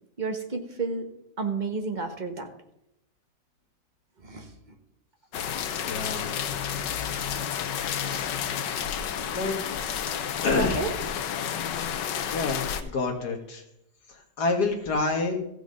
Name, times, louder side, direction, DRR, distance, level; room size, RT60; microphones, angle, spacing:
voice 1, 0.2-1.1 1.4-2.5 4.2-4.5 10.5-10.9, right 4 dB, 30° right, 4 dB, 1.3 m, -30 dB
sound 1, 5.3-12.8, left 8 dB, 85° left, 1.5 m, -31 dB
voice 2, 5.9-6.3 8.0-8.3 9.3-9.6 10.4-10.8 12.3-13.6 14.1-15.4, left 3 dB, 65° left, 4 dB, 2.2 m, -28 dB
15.0 x 6.1 x 5.3 m, 0.81 s
omnidirectional pair, 1.9 m